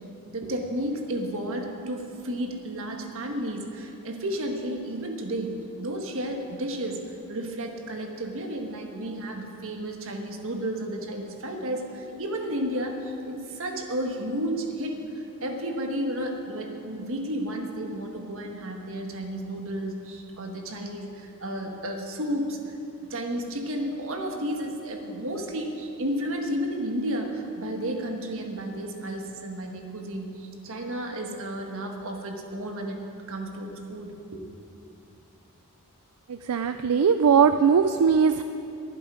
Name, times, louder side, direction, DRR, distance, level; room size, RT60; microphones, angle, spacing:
voice 1, 0.3-22.8 23.1-33.0 33.3-34.4, right 1 dB, 65° right, 3 dB, 1.6 m, -32 dB
voice 2, 36.5-38.4, right 6 dB, 85° right, 9 dB, 0.4 m, -20 dB
23.0 x 7.7 x 5.0 m, 2.7 s
head